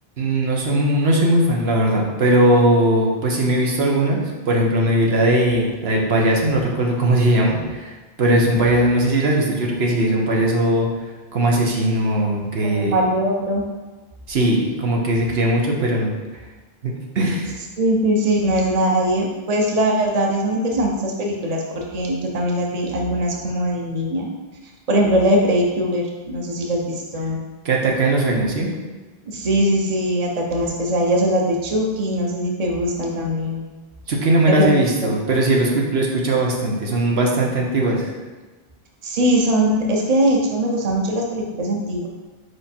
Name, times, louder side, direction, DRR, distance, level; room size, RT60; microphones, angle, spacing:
voice 1, 0.2-10.9 11.3-12.9 14.3-16.1 16.8-17.5 27.6-28.7 34.1-38.1, right 1 dB, 80° right, -1 dB, 1.3 m, -19 dB
voice 2, 12.6-13.7 17.8-24.3 24.9-27.4 29.3-33.6 34.5-34.7 35.0-35.1 39.0-42.1, equal, 40° right, 0 dB, 0.9 m, -21 dB
5.0 x 4.9 x 4.4 m, 1.2 s
omnidirectional pair, 1.0 m